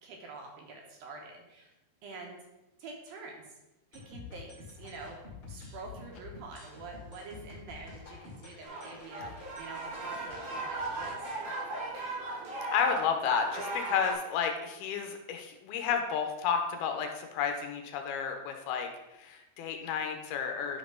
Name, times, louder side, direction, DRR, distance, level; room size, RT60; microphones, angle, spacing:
voice 1, 0.0-1.7 2.0-2.4 2.8-3.4 3.9-5.2 5.5-12.0, right 3 dB, 70° right, 1 dB, 2.5 m, -47 dB
sound 1, 3.9-11.4, left 4 dB, 35° left, 2.2 m, -49 dB
sound 2, 8.6-14.1, right 2 dB, 85° right, 6.0 m, -37 dB
voice 2, 12.7-18.9 19.1-20.8, left 7 dB, 75° left, 5 dB, 2.5 m, -31 dB
11.0 x 5.8 x 3.8 m, 0.98 s
omnidirectional pair, 5.1 m